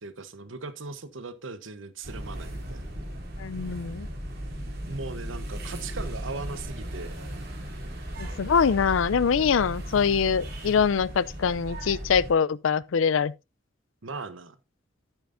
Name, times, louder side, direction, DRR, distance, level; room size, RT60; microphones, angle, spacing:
voice 1, 0.0-2.9 4.8-7.1 14.0-14.6, right 3 dB, 80° right, 1.0 m, -38 dB
sound 1, 2.0-12.3, equal, 50° right, 2.8 m, -36 dB
voice 2, 3.4-4.1 8.2-13.3, left 6 dB, 85° left, 0.5 m, -24 dB
10.5 x 9.1 x 2.6 m
head